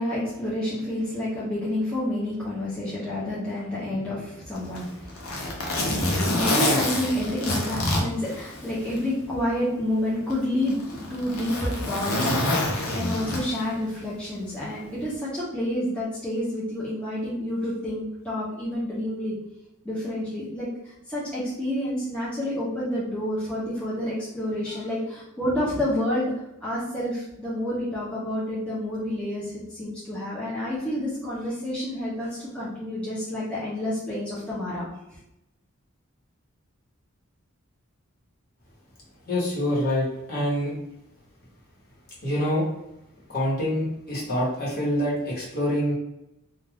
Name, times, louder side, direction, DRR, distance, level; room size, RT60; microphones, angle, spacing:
voice 1, 0.0-5.4 6.2-12.3 12.9-19.3 19.8-26.3 26.6-34.9, left 1 dB, 5° left, -9 dB, 0.7 m, -29 dB
Zipper (clothing), 4.6-9.0 9.4-9.5 10.3-13.8 14.9-15.1, left 1 dB, 85° left, 0.7 m, -27 dB
voice 2, 39.3-40.7 42.2-42.6 43.3-45.9, equal, 45° left, -6 dB, 1.1 m, -26 dB
2.4 x 2.3 x 3.3 m, 0.88 s
head